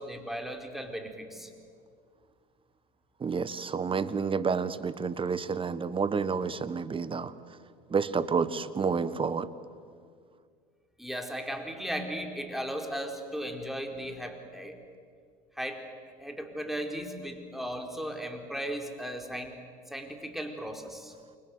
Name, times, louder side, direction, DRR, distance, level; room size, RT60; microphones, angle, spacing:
voice 1, 0.0-1.5 11.0-14.8 15.6-15.8 16.2-19.5 19.9-21.1, equal, ahead, 3 dB, 4.4 m, -36 dB
voice 2, 3.2-7.3 7.9-9.5, right 5 dB, 25° right, 15 dB, 1.5 m, -29 dB
29.0 x 24.5 x 8.0 m, 2.1 s
hypercardioid pair, 75°, 21 cm